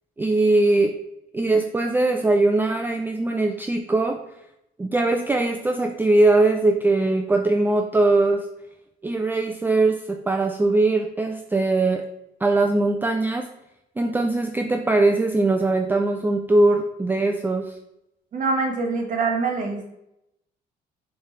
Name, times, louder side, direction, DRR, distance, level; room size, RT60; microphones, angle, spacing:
voice 1, 0.2-1.0 1.3-4.2 4.8-8.5 9.0-12.1 12.4-13.5 14.0-17.8, right 2 dB, 10° right, 5 dB, 0.4 m, -21 dB
voice 2, 18.3-19.9, right 4 dB, 50° right, 3 dB, 1.5 m, -24 dB
6.8 x 3.3 x 4.3 m, 0.85 s
cardioid pair, 110°, 17 cm